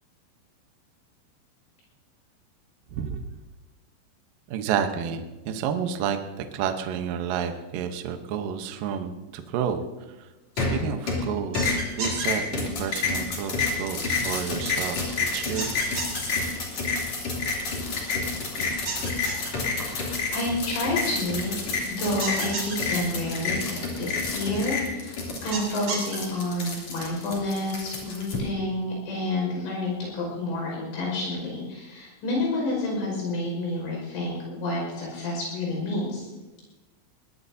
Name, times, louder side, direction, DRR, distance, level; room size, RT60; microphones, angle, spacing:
voice 1, 2.9-3.2 4.5-9.8 10.2-10.3 10.6-15.7, right 8 dB, 85° right, 6 dB, 1.9 m, -30 dB
sound 1, 10.6-11.3 11.5-28.4, left 4 dB, 40° left, 3.7 m, -29 dB
sound 2, 11.5-12.3 15.6-16.2 18.9-19.5 22.2-22.8 25.5-26.2, right 3 dB, 40° right, 4.1 m, -31 dB
voice 2, 19.9-21.6 21.9-36.3, left 1 dB, 80° left, -3 dB, 8.0 m, -29 dB
21.5 x 18.0 x 2.8 m, 1.1 s
omnidirectional pair, 5.6 m